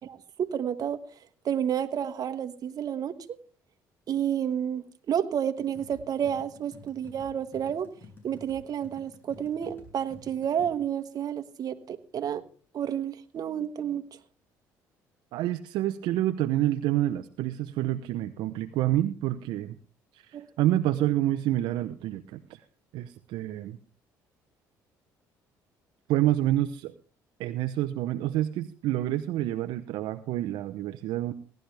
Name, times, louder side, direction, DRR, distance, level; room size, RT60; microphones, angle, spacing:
voice 1, 0.0-1.0 1.4-3.2 4.1-7.9 8.2-12.4 12.7-14.0 20.3-20.5, right 9 dB, 55° right, 10 dB, 1.3 m, -30 dB
sound 1, 5.6-10.7, left 2 dB, 30° left, 6.9 m, -51 dB
voice 2, 15.3-19.8 20.1-22.6 22.9-23.8 26.1-26.9 27.4-31.3, right 14 dB, 75° right, 9 dB, 0.7 m, -28 dB
18.0 x 12.0 x 3.4 m, 0.40 s
supercardioid pair, 75°, 8 cm